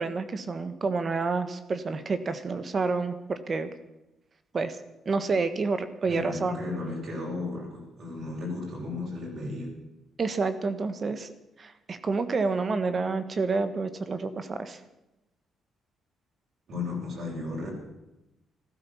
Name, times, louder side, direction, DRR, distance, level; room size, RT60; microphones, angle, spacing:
voice 1, 0.0-3.7 4.5-4.8 5.0-6.5 10.2-11.3 11.6-14.8, right 4 dB, 40° right, 10 dB, 1.4 m, -29 dB
voice 2, 6.1-9.7 16.7-17.7, left 3 dB, 60° right, -2 dB, 7.4 m, -34 dB
15.0 x 13.0 x 7.3 m, 0.97 s
cardioid pair, 90°, 0 cm